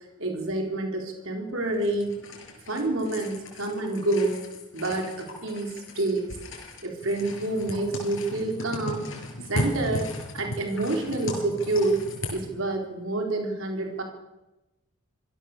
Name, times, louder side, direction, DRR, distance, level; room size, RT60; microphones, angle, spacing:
voice 1, 0.2-2.2 2.7-4.4 4.7-6.3 6.8-9.1 9.5-12.0 12.3-14.0, right 2 dB, 65° right, 2 dB, 4.3 m, -28 dB
sound 1, 1.7-12.4, left 1 dB, 60° left, 6.3 m, -36 dB
26.5 x 17.0 x 6.8 m, 1.0 s
head